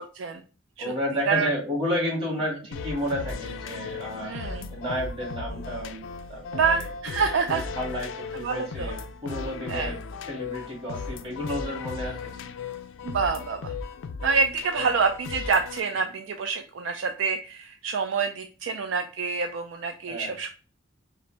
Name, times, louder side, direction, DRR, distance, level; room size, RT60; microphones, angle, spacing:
voice 1, 0.8-4.3 4.7-6.0 6.3-6.9 7.5-10.0 10.3-12.3 20.1-20.3, equal, 30° right, -4 dB, 2.1 m, -31 dB
sound 1, 2.7-15.8, left 5 dB, 80° left, 0.4 m, -36 dB
voice 2, 4.2-4.7 6.5-7.7 8.3-8.9 9.7-9.9 13.0-13.7 14.2-20.5, right 5 dB, 75° right, 6 dB, 0.4 m, -27 dB
5.3 x 2.0 x 3.2 m, 0.37 s
head